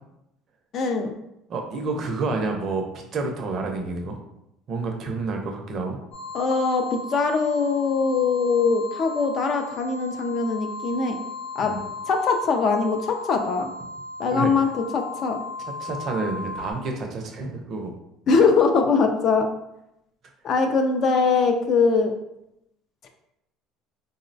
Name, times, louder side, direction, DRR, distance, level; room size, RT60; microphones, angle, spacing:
voice 1, 0.7-1.1 6.3-11.2 11.6-11.7 12.1-13.7 14.2-15.4 18.3-19.5 20.4-22.1, left 4 dB, 40° left, 5 dB, 0.3 m, -22 dB
voice 2, 1.5-4.2 4.7-6.0 11.6-11.8 14.3-14.5 15.8-17.9, right 3 dB, 40° right, 3 dB, 0.5 m, -29 dB
sound 1, 6.1-16.7, left 3 dB, 60° left, 0.8 m, -36 dB
3.7 x 2.0 x 2.6 m, 0.83 s
cardioid pair, 155°, 0 cm